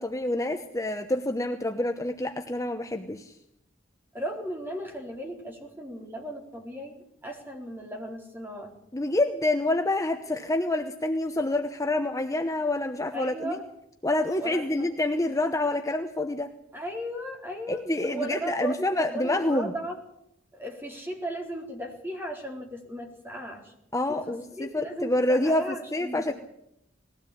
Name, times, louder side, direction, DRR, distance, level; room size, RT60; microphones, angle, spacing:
voice 1, 0.0-3.4 8.9-13.5 14.0-16.5 17.7-19.7 23.9-26.3, left 2 dB, 15° left, 6 dB, 0.9 m, -27 dB
voice 2, 4.1-8.8 13.1-13.6 14.4-14.9 16.7-20.0 20.5-23.7 24.1-26.3, right 1 dB, 10° right, 1 dB, 4.2 m, -36 dB
20.5 x 16.0 x 8.6 m, 0.78 s
head